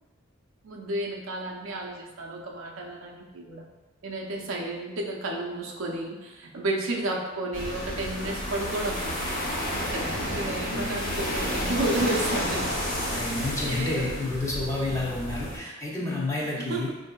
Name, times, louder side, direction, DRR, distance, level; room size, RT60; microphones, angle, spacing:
voice 1, 0.6-3.6 4.0-12.9 13.1-14.3 16.6-16.9, right 2 dB, 70° right, -1 dB, 0.5 m, -32 dB
sound 1, 7.5-15.6, equal, 45° left, 1.1 m, -31 dB
voice 2, 13.1-16.9, left 2 dB, 15° left, -4 dB, 0.6 m, -30 dB
4.7 x 2.6 x 2.3 m, 1.1 s
head